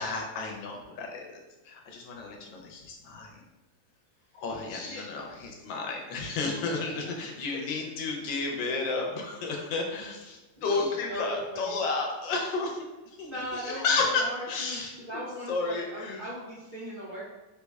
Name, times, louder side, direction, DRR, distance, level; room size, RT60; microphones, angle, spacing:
voice 1, 0.0-3.4 4.3-12.8 13.2-15.2 15.5-16.2, left 3 dB, 80° left, 1 dB, 1.4 m, -32 dB
voice 2, 6.7-7.2 7.5-7.8 8.2-8.4 10.5-11.8 13.3-17.2, equal, 90° right, -8 dB, 0.4 m, -40 dB
3.8 x 2.3 x 3.1 m, 1.1 s
omnidirectional pair, 2.0 m